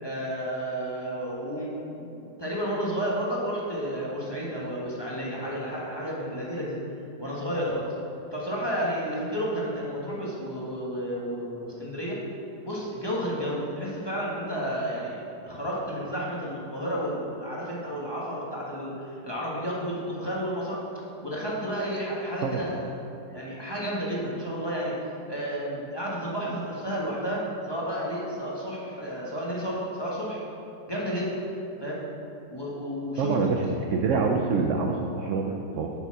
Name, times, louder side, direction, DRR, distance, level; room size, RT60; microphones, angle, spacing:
voice 1, 0.0-6.8 7.2-7.9 8.3-12.2 12.6-20.8 21.2-22.8 23.3-24.9 25.3-30.4 30.9-31.3 31.8-32.0 32.5-33.7, equal, 15° left, -6 dB, 1.2 m, -31 dB
voice 2, 33.2-35.9, right 4 dB, 70° right, 2 dB, 0.7 m, -26 dB
6.8 x 6.2 x 5.8 m, 2.8 s
omnidirectional pair, 1.9 m